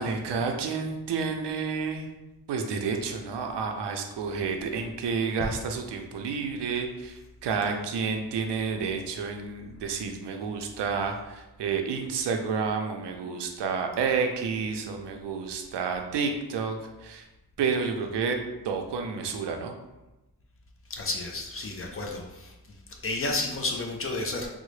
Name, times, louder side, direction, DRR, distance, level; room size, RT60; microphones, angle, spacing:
voice 1, 0.0-2.1 2.5-17.3 17.6-18.4 18.6-19.7, right 5 dB, 85° right, 4 dB, 0.5 m, -30 dB
voice 2, 20.9-22.5 23.0-24.5, left 2 dB, 35° left, 1 dB, 0.4 m, -31 dB
3.7 x 2.0 x 3.1 m, 1.0 s
wide cardioid pair, 150°, 40 cm